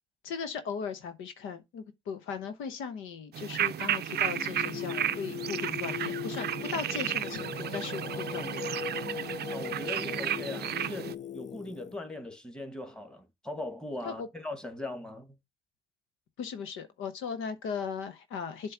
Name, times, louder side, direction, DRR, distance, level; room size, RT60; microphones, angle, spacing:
voice 1, 0.2-8.6 14.0-14.3 16.4-18.7, left 6 dB, 85° left, 1.0 m, -37 dB
sound 1, 3.3-11.1, right 11 dB, 55° right, 0.5 m, -33 dB
Singing, 4.1-12.0, left 8 dB, 35° left, 0.4 m, -39 dB
voice 2, 9.5-15.3, left 2 dB, 5° left, 1.6 m, -40 dB
7.7 x 3.1 x 5.8 m
cardioid pair, 90°, 20 cm